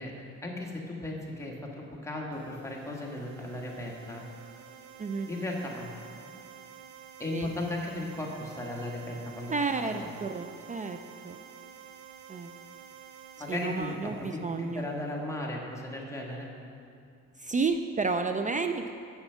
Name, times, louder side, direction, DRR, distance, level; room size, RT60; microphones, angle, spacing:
voice 1, 0.0-1.6 2.0-4.2 5.3-5.9 7.2-10.1 13.4-16.5, left 1 dB, 10° left, -2 dB, 1.7 m, -36 dB
sound 1, 2.3-15.0, right 8 dB, 75° right, 0.6 m, -50 dB
voice 2, 9.5-11.0 11.2-11.4 12.3-12.5 13.5-14.9 17.4-18.9, right 4 dB, 25° right, 8 dB, 0.4 m, -31 dB
7.8 x 7.1 x 5.7 m, 2.5 s
cardioid pair, 90°, 30 cm